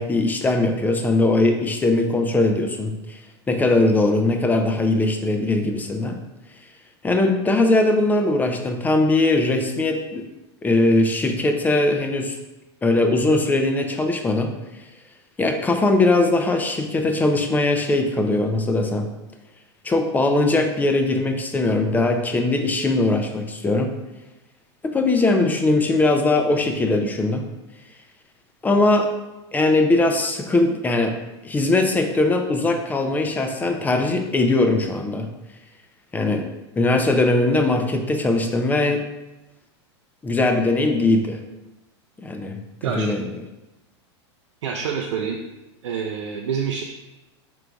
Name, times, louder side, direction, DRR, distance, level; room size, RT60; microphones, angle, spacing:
voice 1, 0.0-3.2 3.5-6.2 7.0-10.2 10.6-12.4 12.8-14.5 15.4-19.1 19.8-23.9 24.8-27.4 28.6-29.1 29.5-31.1 31.4-35.3 36.1-36.4 36.8-39.0 40.2-41.4 42.2-42.6 43.0-43.2, left 2 dB, 10° left, 5 dB, 0.4 m, -20 dB
voice 2, 44.6-45.4 45.8-46.8, right 7 dB, 80° right, 1 dB, 0.4 m, -27 dB
4.6 x 3.8 x 2.3 m, 1.0 s
hypercardioid pair, 120°, 15 cm